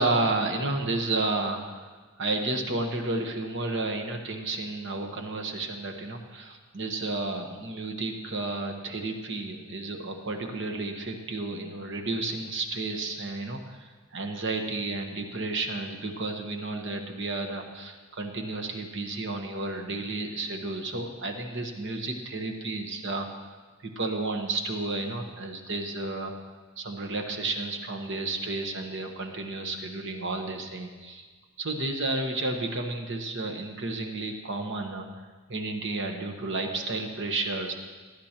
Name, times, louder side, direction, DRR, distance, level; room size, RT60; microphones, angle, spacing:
voice 1, 0.0-1.9 2.2-23.5 23.8-26.3 26.8-31.3 31.6-35.1 35.5-37.7, right 2 dB, 55° right, 3 dB, 1.2 m, -32 dB
18.0 x 11.5 x 3.0 m, 1.4 s
head